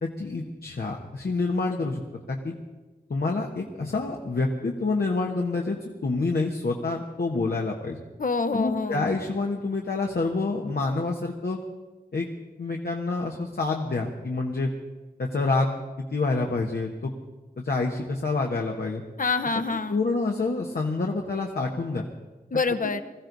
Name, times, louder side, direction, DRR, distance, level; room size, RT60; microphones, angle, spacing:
voice 1, 0.0-2.0 2.3-2.5 3.1-8.0 8.5-11.6 12.1-12.3 12.6-14.7 15.2-17.1 17.6-19.0 19.9-22.1 22.8-22.9, left 3 dB, 75° left, 0 dB, 1.4 m, -27 dB
voice 2, 8.2-9.1 19.2-20.0 22.5-23.0, left 4 dB, 55° left, 9 dB, 1.0 m, -26 dB
21.5 x 14.5 x 4.1 m, 1.2 s
cardioid pair, 40°, 16 cm